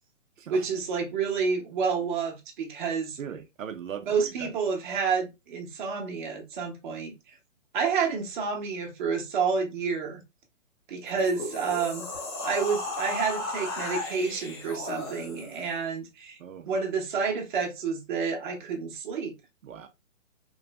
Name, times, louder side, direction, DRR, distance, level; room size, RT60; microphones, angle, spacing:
voice 1, 0.5-3.2 4.0-7.1 7.7-10.2 10.9-12.1 12.4-16.4 16.7-19.3, right 5 dB, 40° right, 0.8 m, -29 dB
voice 2, 3.2-4.5 16.4-16.7 19.6-19.9, right 8 dB, 80° right, 0.6 m, -39 dB
sound 1, 11.1-15.7, left 2 dB, 20° left, 0.5 m, -35 dB
3.1 x 2.4 x 2.3 m
hypercardioid pair, 140°, 39 cm